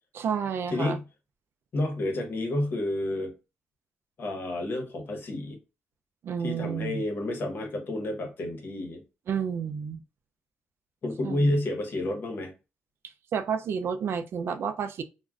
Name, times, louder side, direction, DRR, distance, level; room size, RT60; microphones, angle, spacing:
voice 1, 0.1-1.0 6.2-7.0 9.3-10.0 11.2-11.6 13.3-15.0, right 7 dB, 70° right, 0.3 m, -30 dB
voice 2, 0.7-1.0 1.7-3.3 4.2-5.6 6.4-9.0 11.0-12.5, left 1 dB, 55° left, 0.9 m, -30 dB
2.3 x 2.1 x 3.5 m
cardioid pair, 95°, 4 cm